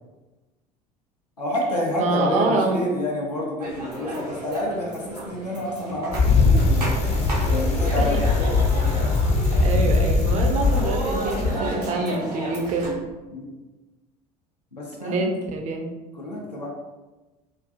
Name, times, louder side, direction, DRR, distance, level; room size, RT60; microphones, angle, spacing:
voice 1, 1.4-8.7 13.3-13.4 14.7-15.3 16.1-16.7, left 1 dB, 90° left, -3 dB, 0.5 m, -29 dB
voice 2, 2.0-2.8 8.0-8.2 9.6-13.0 15.0-15.9, right 3 dB, 35° right, 3 dB, 0.4 m, -26 dB
sound 1, 3.6-12.9, right 1 dB, 85° right, 0.6 m, -33 dB
Bicycle, 6.1-11.5, left 3 dB, 35° left, 0.5 m, -21 dB
2.3 x 2.3 x 2.5 m, 1.1 s
figure-of-eight pair, 65°, 20 cm